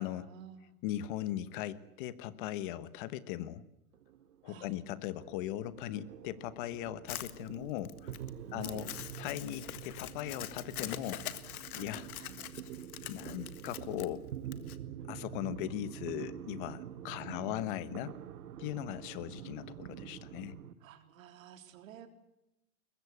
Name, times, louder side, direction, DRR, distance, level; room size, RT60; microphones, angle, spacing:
voice 1, 0.2-0.7 4.4-4.8 8.4-8.9 11.7-11.9 12.2-12.8 17.2-17.7 20.8-22.1, right 10 dB, 65° right, 7 dB, 3.7 m, -52 dB
voice 2, 0.8-3.6 4.4-8.1 8.5-8.9 9.2-11.2 11.7-12.1 13.1-14.3 15.1-18.2 18.6-20.5, left 13 dB, 35° left, 16 dB, 1.2 m, -39 dB
sound 1, 3.9-20.7, right 10 dB, 80° right, 1.7 m, -46 dB
Crumpling crinkling, 7.1-14.8, left 12 dB, 75° left, 1.8 m, -44 dB
22.0 x 21.5 x 8.4 m, 0.86 s
supercardioid pair, 165°, 44 cm